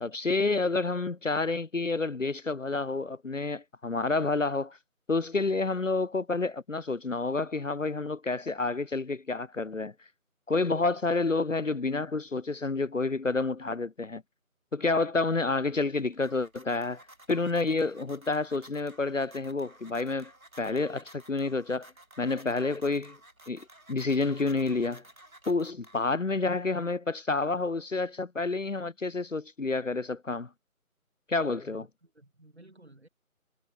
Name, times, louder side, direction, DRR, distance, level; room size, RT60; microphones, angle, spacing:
voice 1, 0.0-4.8 5.1-9.9 10.5-14.2 14.7-20.3 20.6-21.9 22.2-23.2 23.5-25.0 25.5-30.5 31.3-31.8, left 3 dB, 60° left, 0.7 m, -29 dB
sound 1, 15.7-26.4, right 1 dB, 70° right, 7.4 m, -55 dB
voice 2, 31.6-33.1, right 1 dB, 45° right, 5.6 m, -55 dB
figure-of-eight pair, 175°, 43 cm